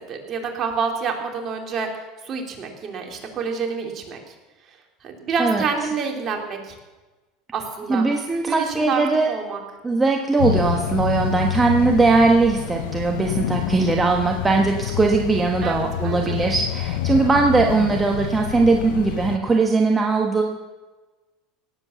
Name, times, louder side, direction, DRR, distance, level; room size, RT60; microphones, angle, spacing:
voice 1, 0.0-4.3 5.0-6.8 7.5-8.1 8.5-9.0 9.3-9.6 15.6-16.5, right 5 dB, 40° right, 2 dB, 3.0 m, -28 dB
voice 2, 7.9-9.3 9.8-20.4, right 3 dB, 15° right, 2 dB, 1.4 m, -20 dB
sound 1, 10.4-19.4, left 11 dB, 85° left, 0.6 m, -27 dB
18.0 x 8.0 x 7.1 m, 1.2 s
supercardioid pair, 110°, 0 cm